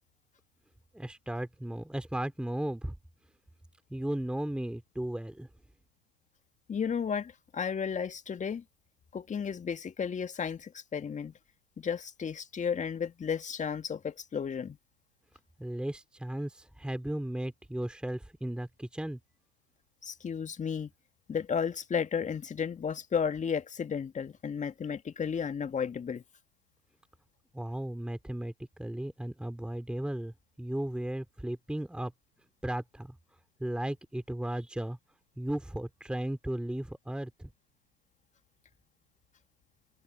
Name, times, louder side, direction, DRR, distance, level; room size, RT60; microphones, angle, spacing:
voice 1, 0.9-2.9 3.9-5.5 15.6-19.2 27.5-32.1 32.6-33.2 33.6-35.0 35.4-37.5, right 1 dB, ahead, 3.2 m, -35 dB
voice 2, 6.7-8.6 9.1-11.3 11.8-14.8 20.0-20.9 21.3-26.2, left 7 dB, 15° left, 2.1 m, -33 dB
open air
figure-of-eight pair, 95°, 45 cm